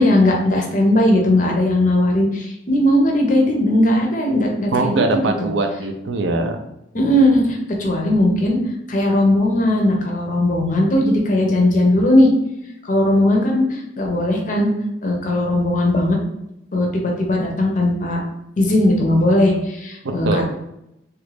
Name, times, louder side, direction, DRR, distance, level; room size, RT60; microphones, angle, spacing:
voice 1, 0.0-5.5 6.9-8.6 8.9-12.3 12.8-14.7 15.0-16.2 16.7-18.2 18.6-20.4, left 1 dB, 40° left, 0 dB, 0.6 m, -18 dB
voice 2, 4.7-6.6 20.2-20.4, right 3 dB, 65° right, 5 dB, 0.4 m, -21 dB
3.0 x 2.4 x 3.3 m, 0.84 s
head